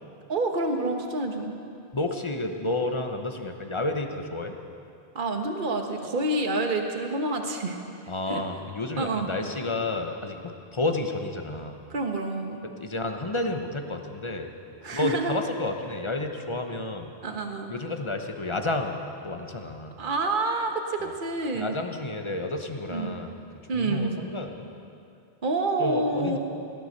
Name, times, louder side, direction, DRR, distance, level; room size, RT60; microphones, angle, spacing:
voice 1, 0.3-1.5 5.1-7.8 8.3-8.4 9.0-9.3 11.9-12.6 14.8-15.4 17.2-17.7 20.0-21.8 22.9-23.1 23.7-24.1 25.4-26.4, right 2 dB, 50° right, 3 dB, 1.4 m, -28 dB
voice 2, 1.9-4.6 8.1-11.8 12.6-14.5 14.9-17.1 17.7-20.0 21.0-21.1 21.5-23.4 23.7-24.7 25.8-26.4, left 2 dB, 30° left, 5 dB, 1.0 m, -31 dB
18.0 x 12.0 x 6.6 m, 2.5 s
omnidirectional pair, 1.1 m